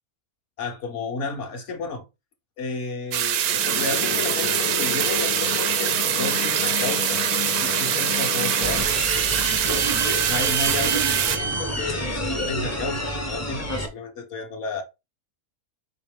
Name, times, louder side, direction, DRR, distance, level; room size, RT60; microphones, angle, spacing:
voice 1, 0.6-2.1 2.6-8.9 9.7-14.8, left 3 dB, 55° left, 1.1 m, -32 dB
sound 1, 3.1-11.4, right 10 dB, 90° right, 1.1 m, -24 dB
sound 2, 3.4-8.8, left 11 dB, 85° left, 1.1 m, -31 dB
sound 3, 8.6-13.9, right 1 dB, 20° left, 0.5 m, -28 dB
4.9 x 3.0 x 3.5 m
omnidirectional pair, 1.6 m